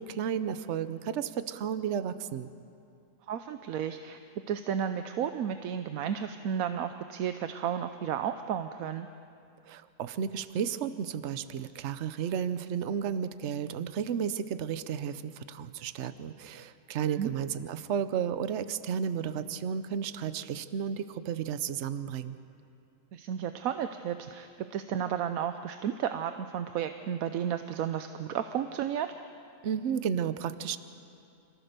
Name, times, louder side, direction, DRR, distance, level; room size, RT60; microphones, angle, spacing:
voice 1, 0.0-2.5 9.7-22.4 29.6-30.8, right 8 dB, 60° right, 13 dB, 1.0 m, -33 dB
voice 2, 3.3-4.2 4.5-9.1 17.1-17.3 23.1-29.1, right 9 dB, 85° right, 9 dB, 1.1 m, -33 dB
26.0 x 15.5 x 6.7 m, 2.5 s
omnidirectional pair, 1.5 m